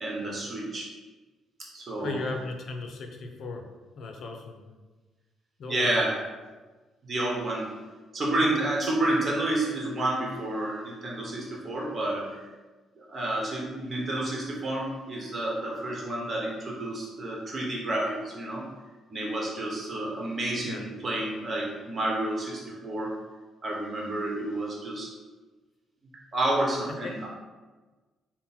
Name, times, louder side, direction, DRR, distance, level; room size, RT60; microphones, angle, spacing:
voice 1, 0.0-0.9 1.7-2.2 5.7-6.2 7.0-7.7 8.1-12.5 13.0-18.7 19.1-23.1 23.6-25.1 26.3-27.3, right 1 dB, 40° right, -2 dB, 1.0 m, -30 dB
voice 2, 2.0-3.6 3.9-4.8 5.6-6.1 20.6-20.8 27.0-27.1, left 3 dB, 60° left, 3 dB, 0.6 m, -37 dB
3.7 x 2.1 x 4.2 m, 1.3 s
cardioid pair, 90°, 0 cm